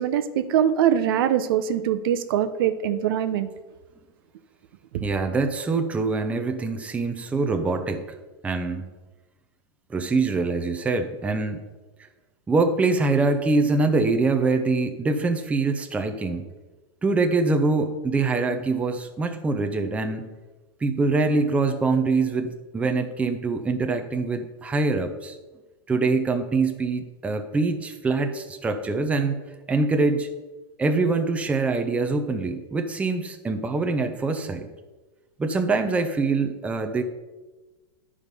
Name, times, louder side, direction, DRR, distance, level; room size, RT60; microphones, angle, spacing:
voice 1, 0.0-3.5 4.9-5.0, right 10 dB, 65° right, 11 dB, 0.7 m, -23 dB
voice 2, 5.0-8.0 8.4-8.9 9.9-11.6 12.5-16.5 17.0-20.3 20.8-25.4 25.9-29.4 29.7-30.3 30.8-34.7 35.4-37.0, right 3 dB, 10° right, 6 dB, 0.6 m, -24 dB
10.5 x 4.9 x 5.3 m, 1.2 s
supercardioid pair, 145°, 13 cm